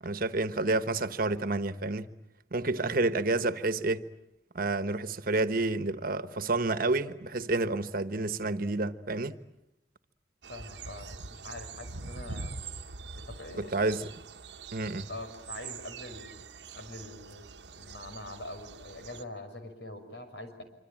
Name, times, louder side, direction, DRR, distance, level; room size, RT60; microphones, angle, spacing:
voice 1, 0.0-2.1 2.5-4.0 4.5-9.3 13.6-14.1 14.7-15.1, right 2 dB, 55° right, 1.2 m, -29 dB
voice 2, 2.8-3.5 10.5-12.6 13.3-14.0 15.1-16.4 16.7-17.5 17.7-20.6, left 1 dB, 85° left, 5.8 m, -44 dB
sound 1, 10.4-19.2, right 4 dB, 80° right, 1.1 m, -44 dB
26.0 x 25.5 x 8.8 m
head